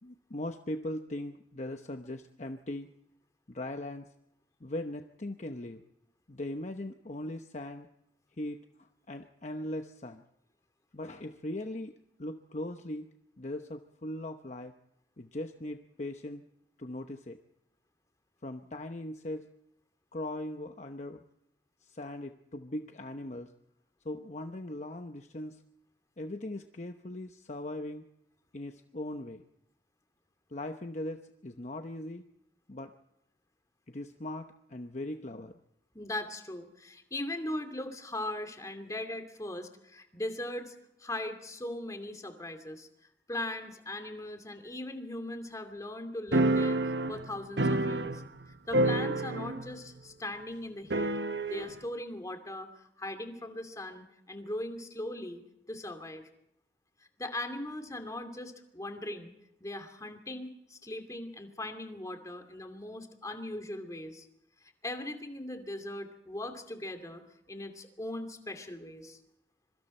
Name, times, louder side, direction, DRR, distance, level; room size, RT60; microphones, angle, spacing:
voice 1, 0.0-2.9 3.5-4.1 4.6-5.8 6.3-7.9 8.4-8.6 9.1-10.2 10.9-11.9 12.2-13.1 13.4-14.7 15.2-16.4 16.8-17.4 18.4-19.5 20.1-21.2 21.8-23.5 24.0-25.6 26.2-28.1 28.5-29.4 30.5-32.2 32.7-32.9 33.9-35.6, left 1 dB, 40° left, 6 dB, 0.9 m, -39 dB
voice 2, 35.9-40.7 41.0-42.9 43.3-46.8 47.1-48.2 48.7-51.1 51.5-55.4 55.7-56.3 57.2-59.3 59.6-64.3 64.8-67.2 67.5-69.2, left 1 dB, 20° left, 6 dB, 2.6 m, -39 dB
sound 1, 46.3-48.4 48.7-49.7 50.0-50.1 50.9-51.7, right 2 dB, 75° right, 1.2 m, -28 dB
25.5 x 24.0 x 4.4 m, 0.81 s
head